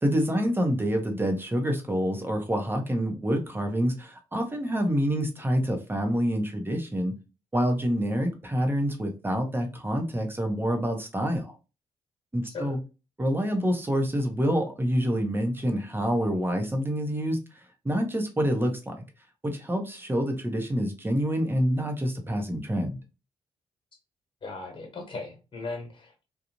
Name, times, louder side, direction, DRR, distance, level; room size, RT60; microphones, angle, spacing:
voice 1, 0.0-7.1 7.5-11.5 12.3-12.8 13.2-17.4 17.8-18.9 19.4-23.0, equal, 20° right, 1.0 m, -27 dB
voice 2, 12.4-12.8 24.4-26.3, left 3 dB, 45° left, 1.3 m, -38 dB
2.5 x 2.3 x 3.0 m
supercardioid pair, 55°, 12 cm